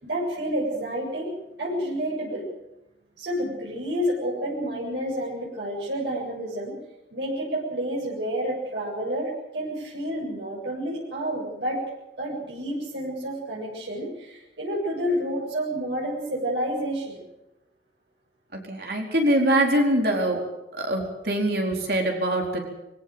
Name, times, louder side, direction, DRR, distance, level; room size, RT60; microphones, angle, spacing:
voice 1, 0.0-2.5 3.2-6.7 7.1-11.8 12.2-17.2, equal, 85° right, -4 dB, 7.8 m, -29 dB
voice 2, 18.5-20.4 20.7-22.6, right 1 dB, 60° right, 1 dB, 4.4 m, -23 dB
23.5 x 17.5 x 7.8 m, 0.95 s
head